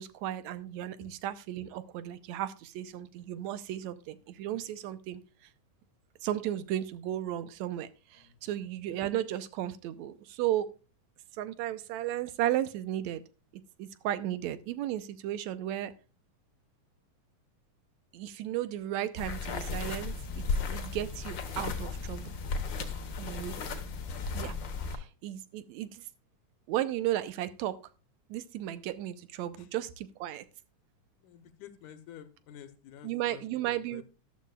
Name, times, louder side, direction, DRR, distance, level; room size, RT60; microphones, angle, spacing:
voice 1, 0.0-5.2 6.2-10.7 11.3-13.2 13.8-15.9 18.1-20.1 20.7-22.4 23.2-23.6 24.3-24.6 24.9-26.0 26.7-27.8 28.3-30.5 33.0-34.0, right 12 dB, 75° right, 13 dB, 1.9 m, -34 dB
voice 2, 8.2-8.6 24.8-25.1 29.5-29.7 31.2-34.0, left 10 dB, 85° left, 10 dB, 2.4 m, -51 dB
sound 1, 19.2-25.0, left 4 dB, 55° left, 1.4 m, -35 dB
13.0 x 12.5 x 2.4 m, 0.33 s
omnidirectional pair, 3.5 m